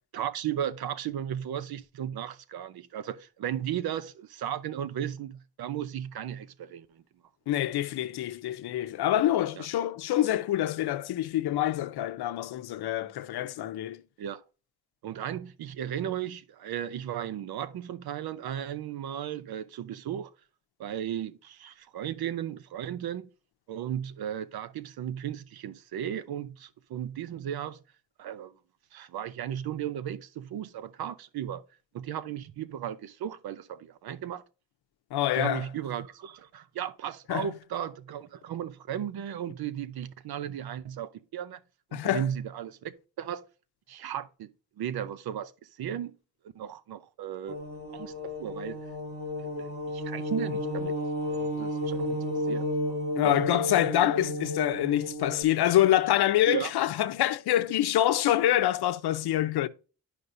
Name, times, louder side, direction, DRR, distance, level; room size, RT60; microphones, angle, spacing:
voice 1, 0.1-7.0 9.6-9.7 14.2-14.4 15.0-20.3 20.8-23.3 23.7-27.8 28.2-28.5 28.9-31.6 31.9-34.4 35.3-41.6 41.9-43.4 43.9-44.5 44.8-45.5 45.8-46.1 46.4-47.6 47.9-48.1 48.4-48.8 49.6-50.9 51.4-51.9 52.5-52.6 53.2-53.6 56.5-56.7, right 10 dB, 75° right, 0.8 m, -35 dB
voice 2, 7.5-14.0 35.1-35.6 37.3-37.5 41.9-42.3 53.2-59.7, left 13 dB, 90° left, 0.7 m, -26 dB
sound 1, 47.5-55.4, left 1 dB, 40° right, 2.0 m, -32 dB
11.0 x 5.2 x 2.6 m
wide cardioid pair, 160°, 37 cm